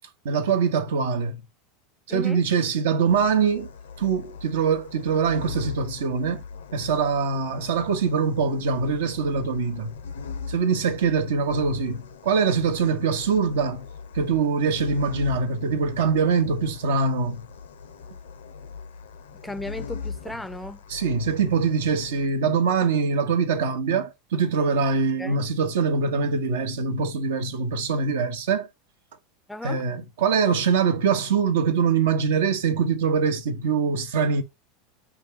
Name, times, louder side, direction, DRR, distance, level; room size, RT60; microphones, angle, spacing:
voice 1, 0.2-1.4 2.1-3.7 4.0-6.4 6.7-10.0 10.5-13.9 14.1-17.4 20.9-28.7 29.6-34.4, right 5 dB, 80° right, 0.6 m, -23 dB
voice 2, 2.1-2.4 19.4-20.8 25.2-25.4 29.5-29.8, left 2 dB, 5° left, 0.3 m, -35 dB
sound 1, 3.1-22.3, left 5 dB, 90° left, 0.6 m, -40 dB
5.3 x 2.3 x 3.4 m
hypercardioid pair, 95°, 0 cm